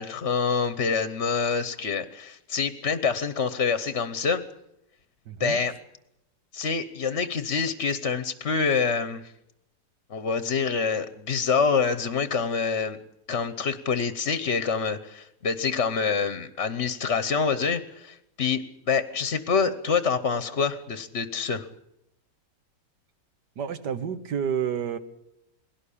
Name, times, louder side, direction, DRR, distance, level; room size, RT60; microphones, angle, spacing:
voice 1, 0.0-4.4 5.4-5.7 6.5-9.2 10.1-13.0 13.3-21.6, left 5 dB, 45° left, 12 dB, 1.2 m, -26 dB
voice 2, 5.3-5.6 23.6-25.0, right 8 dB, 75° right, 10 dB, 1.9 m, -29 dB
21.0 x 17.5 x 8.5 m, 0.82 s
omnidirectional pair, 1.9 m